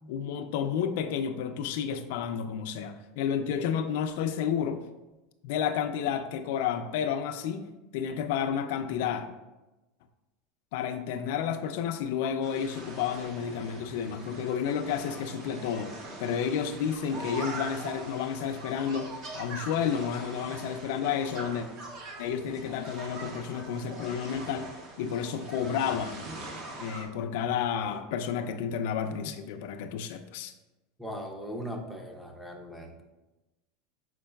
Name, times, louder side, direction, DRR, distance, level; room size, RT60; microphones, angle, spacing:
voice 1, 0.1-4.8 5.4-9.3 10.7-21.7 22.2-24.7 25.0-26.3 26.8-30.5, left 8 dB, 65° left, 7 dB, 0.3 m, -31 dB
sound 1, 12.4-27.1, right 2 dB, 40° right, 0.7 m, -42 dB
voice 2, 31.0-33.0, equal, 5° right, 3 dB, 0.5 m, -39 dB
5.3 x 4.4 x 2.2 m, 1.1 s
supercardioid pair, 155°, 0 cm